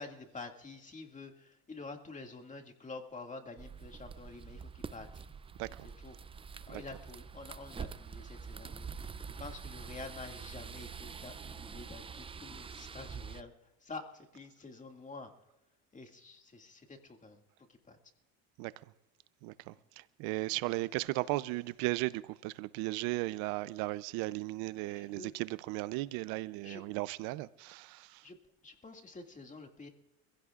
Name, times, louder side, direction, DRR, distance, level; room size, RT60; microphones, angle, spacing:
voice 1, 0.0-5.2 6.0-6.2 6.7-9.1 9.4-13.5 13.8-15.3 15.9-17.4 17.7-18.0 24.9-25.3 26.6-26.8 28.2-28.4 28.6-29.9, left 3 dB, 20° left, 2.2 m, -48 dB
sound 1, 3.6-13.4, right 6 dB, 15° right, 0.4 m, -46 dB
voice 2, 19.4-28.2, right 20 dB, 80° right, 0.6 m, -36 dB
25.5 x 16.5 x 2.4 m
supercardioid pair, 105°, 35 cm